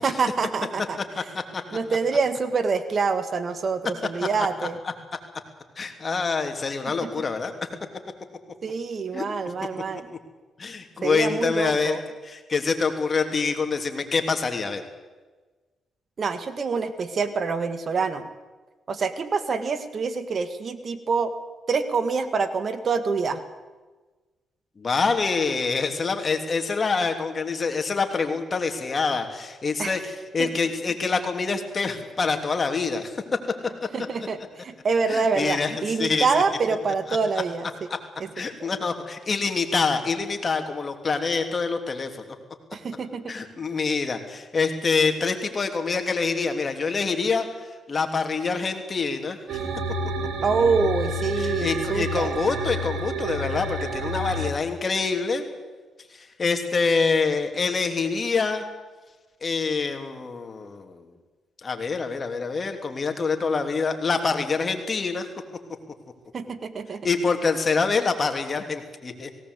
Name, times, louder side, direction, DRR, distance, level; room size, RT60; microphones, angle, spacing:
voice 1, 0.0-1.0 1.7-4.8 7.0-7.2 8.6-10.1 11.0-12.0 16.2-18.3 18.9-21.3 21.7-23.4 29.8-30.0 30.4-30.5 33.9-37.7 38.2-38.3 42.7-43.3 50.4-52.3 66.3-67.1, right 4 dB, 50° right, 11 dB, 1.8 m, -26 dB
voice 2, 1.2-1.6 4.2-4.3 4.6-4.7 5.8-7.5 9.1-9.5 10.6-12.0 12.2-14.8 24.8-33.2 35.1-36.4 37.1-37.2 38.4-42.1 43.3-49.6 51.4-55.4 56.1-58.6 59.4-61.1 61.6-65.3 67.0-69.3, left 4 dB, 40° left, 5 dB, 3.0 m, -26 dB
sound 1, 49.5-54.5, right 1 dB, 75° right, 2.7 m, -29 dB
18.0 x 17.5 x 8.2 m, 1.3 s
supercardioid pair, 65°, 0 cm